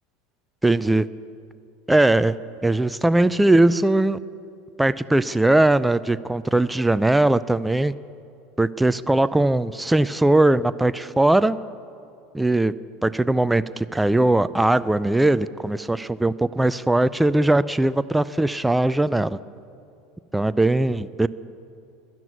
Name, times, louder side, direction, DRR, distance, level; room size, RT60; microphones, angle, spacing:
voice 1, 0.6-1.1 1.9-2.4 2.6-4.2 4.8-7.9 8.6-11.6 12.3-12.7 13.0-19.4 20.3-21.3, right 2 dB, 5° right, 15 dB, 0.4 m, -20 dB
13.0 x 11.0 x 9.4 m, 2.6 s
hypercardioid pair, 85°, 0 cm